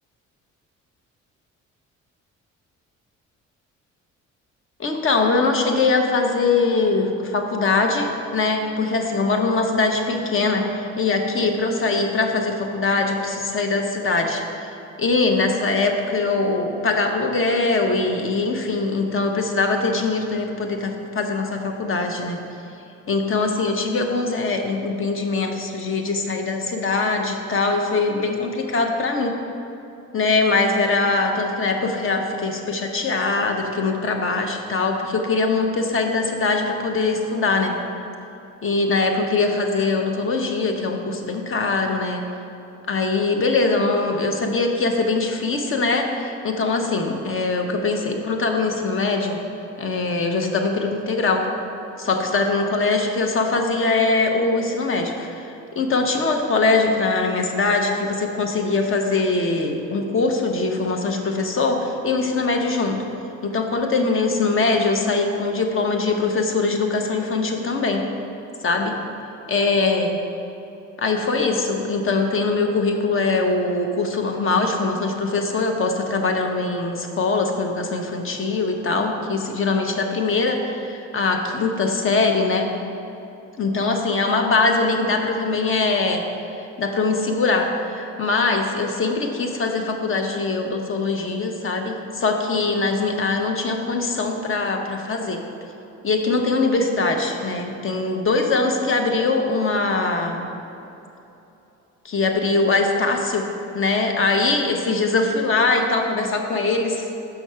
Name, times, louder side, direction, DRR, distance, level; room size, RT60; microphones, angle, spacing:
voice 1, 4.8-10.7 11.0-14.4 15.0-22.4 23.1-29.4 30.1-37.8 38.6-42.2 42.9-49.4 49.8-51.5 52.0-55.4 55.8-63.0 63.4-68.0 68.6-69.0 69.5-70.2 71.0-82.7 83.6-86.2 86.6-95.4 96.0-100.5 102.0-103.5 103.7-107.1, left 3 dB, 45° left, 3 dB, 0.9 m, -22 dB
6.1 x 5.9 x 5.6 m, 2.9 s
cardioid pair, 90°, 30 cm